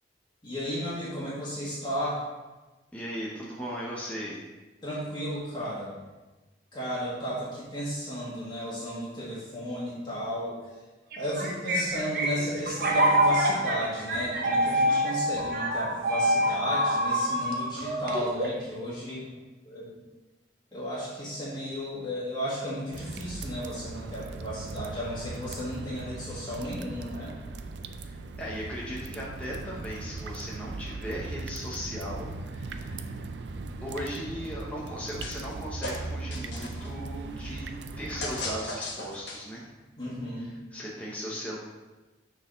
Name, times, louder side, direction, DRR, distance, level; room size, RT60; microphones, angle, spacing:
voice 1, 0.4-2.2 4.8-5.9 6.7-10.6 11.2-19.3 19.6-20.0 20.7-27.3 36.8-36.9 40.0-40.5, equal, 25° left, -8 dB, 1.6 m, -34 dB
voice 2, 2.9-4.4 28.1-33.2 33.8-39.6 40.4-41.6, equal, 5° left, -5 dB, 0.9 m, -37 dB
sound 1, 11.1-18.7, right 1 dB, 50° right, 0.8 m, -26 dB
sound 2, 22.9-38.6, right 3 dB, 65° right, 0.4 m, -39 dB
sound 3, 35.2-35.6 35.8-36.9 38.2-39.6, left 2 dB, 70° left, 1.2 m, -36 dB
6.4 x 4.0 x 5.1 m, 1.2 s
head